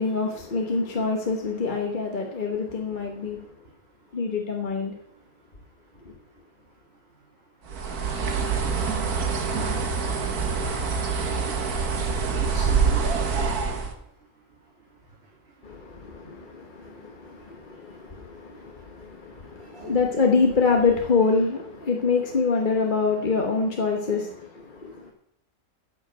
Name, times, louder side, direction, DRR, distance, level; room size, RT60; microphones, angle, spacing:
voice 1, 0.0-3.5 4.1-5.0 15.6-25.1, left 4 dB, 35° left, 1.2 m, -25 dB
voice 2, 0.7-1.1 2.7-4.4 4.9-20.5 24.0-25.1, right 3 dB, 45° right, 2.3 m, -50 dB
Bird, 7.7-13.9, right 5 dB, 80° right, 1.8 m, -25 dB
9.8 x 7.2 x 7.8 m
omnidirectional pair, 1.6 m